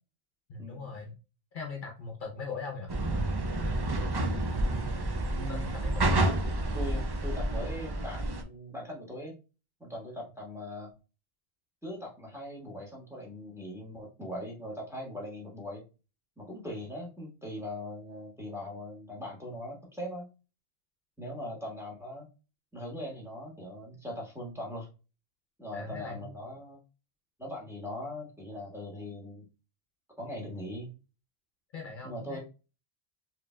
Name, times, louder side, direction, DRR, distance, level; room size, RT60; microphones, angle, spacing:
voice 1, 0.5-1.2 1.5-2.9 5.3-6.2 25.7-26.3 31.7-32.4, left 4 dB, 55° left, 2 dB, 0.8 m, -40 dB
sound 1, 2.9-8.4, right 1 dB, 35° right, 0.4 m, -29 dB
voice 2, 5.3-5.7 6.7-9.4 9.8-10.9 11.8-15.8 16.4-20.3 21.2-22.3 22.7-24.9 25.6-26.8 27.4-29.4 30.2-30.9 32.0-32.4, left 1 dB, 5° right, -2 dB, 1.3 m, -40 dB
5.0 x 2.9 x 2.2 m, 0.32 s
omnidirectional pair, 1.1 m